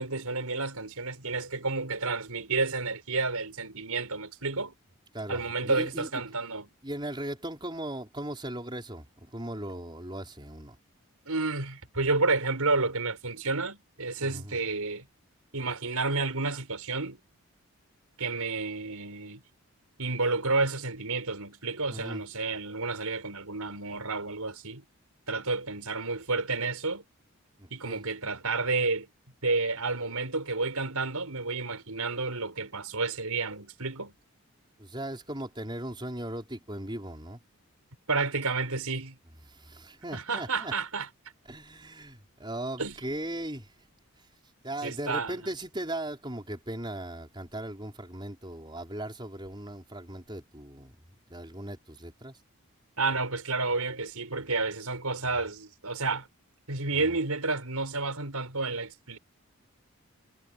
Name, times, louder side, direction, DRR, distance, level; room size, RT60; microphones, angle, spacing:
voice 1, 0.0-4.7 5.3-6.7 11.3-15.0 15.5-17.2 18.2-19.4 20.0-24.8 25.3-27.0 27.7-29.1 29.4-34.1 38.1-39.2 40.1-41.1 42.8-42.9 44.8-45.5 53.0-56.3 56.7-59.2, right 3 dB, 85° right, 5.3 m, -30 dB
voice 2, 5.1-6.2 6.8-10.8 14.2-14.6 21.9-22.2 27.6-28.0 34.8-37.4 39.4-40.7 41.5-43.7 44.6-50.9 51.3-52.4 56.9-57.1, right 1 dB, 20° right, 5.1 m, -38 dB
head